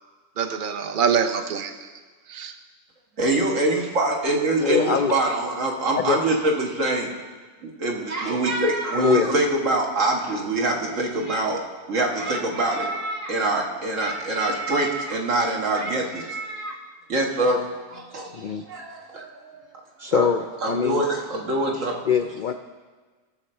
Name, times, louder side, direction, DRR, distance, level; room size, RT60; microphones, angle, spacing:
voice 1, 0.4-1.7 2.3-2.5, right 7 dB, 45° right, 6 dB, 0.8 m, -24 dB
voice 2, 3.2-7.1 7.6-11.6 11.9-16.8 17.1-17.6 17.9-19.5 20.1-20.3 20.6-22.1, right 2 dB, 75° right, -1 dB, 1.9 m, -24 dB
voice 3, 4.6-5.2 5.9-6.2 8.9-9.4 18.3-18.6 20.0-21.0 22.1-22.5, left 7 dB, 70° left, 8 dB, 0.4 m, -23 dB
18.0 x 6.6 x 4.4 m, 1.4 s
omnidirectional pair, 1.3 m